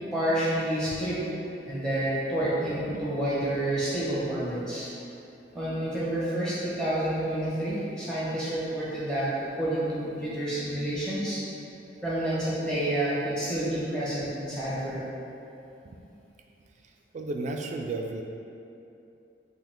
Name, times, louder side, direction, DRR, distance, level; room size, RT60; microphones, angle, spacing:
voice 1, 0.1-1.2 1.7-4.9 5.5-11.4 12.0-15.0, right 1 dB, 5° left, -10 dB, 1.2 m, -29 dB
voice 2, 2.4-3.0 15.8-16.0 17.1-18.2, right 2 dB, 45° right, 2 dB, 0.3 m, -34 dB
4.0 x 2.8 x 4.4 m, 2.7 s
head